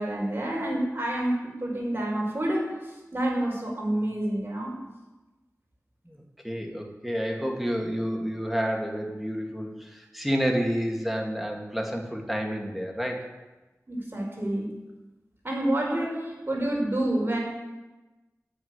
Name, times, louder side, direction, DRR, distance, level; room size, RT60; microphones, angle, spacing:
voice 1, 0.0-4.8 13.9-14.7 15.4-17.4, right 1 dB, 40° right, -2 dB, 5.2 m, -28 dB
voice 2, 6.1-13.3, equal, ahead, 1 dB, 2.3 m, -29 dB
10.0 x 9.0 x 9.6 m, 1.1 s
wide cardioid pair, 55°, 6 cm